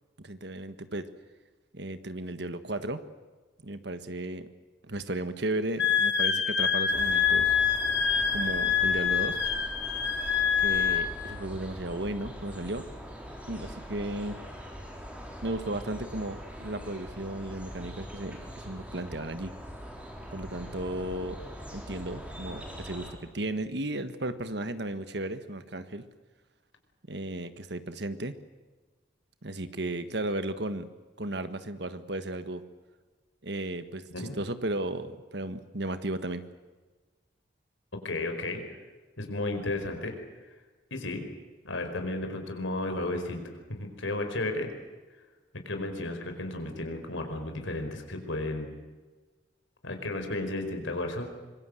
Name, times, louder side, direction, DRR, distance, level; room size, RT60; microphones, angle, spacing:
voice 1, 0.2-1.1 1.7-3.0 3.6-4.5 4.8-7.6 8.3-9.4 10.6-12.8 13.5-14.4 15.4-18.4 18.6-19.5 20.3-21.4 21.7-26.0 27.1-28.4 29.4-30.9 31.2-32.6 33.4-36.4, right 1 dB, 60° right, 11 dB, 1.5 m, -34 dB
Wind instrument woodwind instrument, 5.8-11.1, left 7 dB, 60° left, 3.0 m, -26 dB
sound 1, 6.9-23.1, equal, 5° right, 4.3 m, -42 dB
voice 2, 37.9-38.6 39.2-40.1 40.9-41.2 41.6-44.7 45.6-48.7 49.8-51.3, left 2 dB, 90° left, 5 dB, 4.8 m, -33 dB
25.5 x 23.0 x 7.9 m, 1.3 s
head